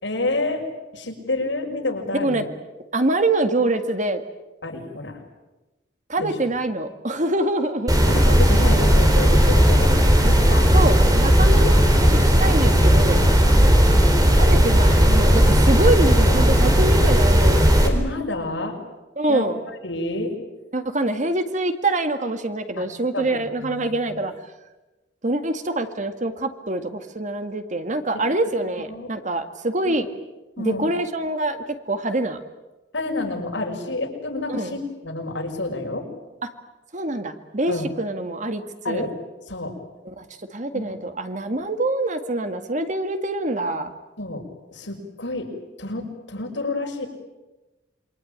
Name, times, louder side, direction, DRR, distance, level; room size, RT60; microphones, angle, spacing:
voice 1, 0.0-0.7 0.9-2.4 4.6-5.2 6.2-6.4 8.0-10.7 17.8-18.8 19.3-19.5 19.8-20.3 22.8-22.9 23.1-24.2 28.9-29.1 29.9-30.0 30.6-30.9 32.9-36.1 37.7-37.9 38.8-39.1 39.5-39.8 40.7-40.9 44.2-45.5 45.8-47.1, left 2 dB, 80° left, 2 dB, 6.0 m, -29 dB
voice 2, 2.9-4.2 6.1-7.9 10.7-13.2 14.4-17.7 19.2-19.6 20.7-24.3 25.2-30.1 30.6-32.4 34.5-34.8 36.9-39.0 40.1-43.9, right 2 dB, 40° right, 8 dB, 2.0 m, -25 dB
sound 1, 7.9-17.9, equal, 20° right, 4.1 m, -16 dB
28.0 x 24.0 x 8.9 m, 1.1 s
head